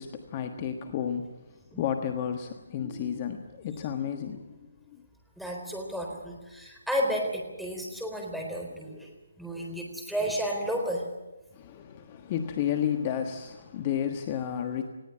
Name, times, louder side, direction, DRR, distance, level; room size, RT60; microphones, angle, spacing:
voice 1, 0.0-1.3 1.8-5.0 11.5-14.9, left 9 dB, 30° left, 6 dB, 1.4 m, -32 dB
voice 2, 5.4-11.1, equal, ahead, 0 dB, 3.8 m, -32 dB
20.0 x 16.5 x 9.8 m, 1.1 s
figure-of-eight pair, 150°, 0 cm